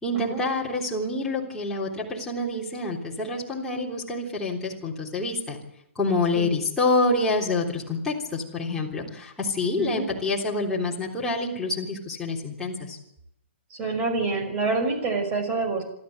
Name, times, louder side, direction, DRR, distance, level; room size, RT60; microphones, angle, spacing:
voice 1, 0.0-5.6 6.0-13.0, left 2 dB, 5° left, -5 dB, 3.5 m, -27 dB
voice 2, 9.8-10.1 13.7-15.8, right 3 dB, 25° right, 4 dB, 5.8 m, -27 dB
27.0 x 13.0 x 7.9 m, 0.78 s
hypercardioid pair, 155°, 7 cm